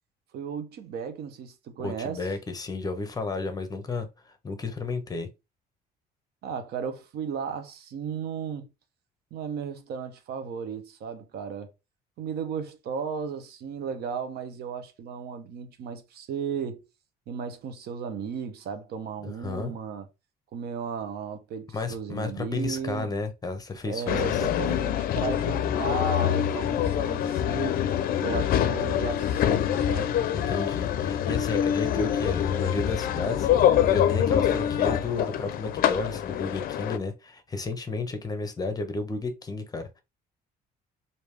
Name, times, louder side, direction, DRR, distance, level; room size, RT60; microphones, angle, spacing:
voice 1, 0.3-2.3 6.4-8.7 9.3-11.7 12.2-16.8 17.3-20.1 20.5-23.1 23.8-27.8 28.2-30.2, right 6 dB, 70° right, 0.7 m, -35 dB
voice 2, 1.8-5.3 19.2-19.7 21.7-24.8 30.3-33.5 33.9-40.0, left 3 dB, 20° left, 0.8 m, -33 dB
sound 1, 24.1-37.0, left 10 dB, 60° left, 0.4 m, -25 dB
3.4 x 2.7 x 3.2 m
cardioid pair, 110°, 17 cm